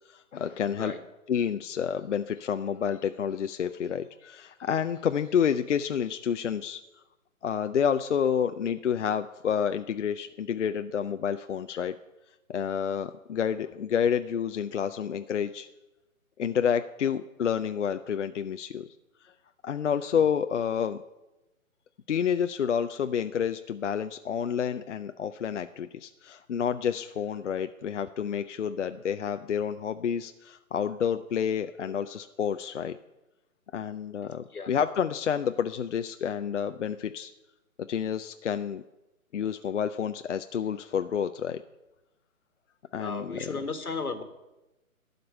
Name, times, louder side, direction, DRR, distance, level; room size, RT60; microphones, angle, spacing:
voice 1, 0.1-0.9 1.3-6.8 7.4-11.9 12.5-15.7 16.4-18.9 19.6-21.0 22.1-33.0 33.7-37.3 37.9-38.8 39.3-41.6 42.9-43.6, left 8 dB, 55° left, 9 dB, 0.5 m, -29 dB
voice 2, 43.0-44.2, left 4 dB, 85° left, 9 dB, 1.7 m, -34 dB
12.0 x 5.3 x 8.7 m, 1.0 s
figure-of-eight pair, 145°, 43 cm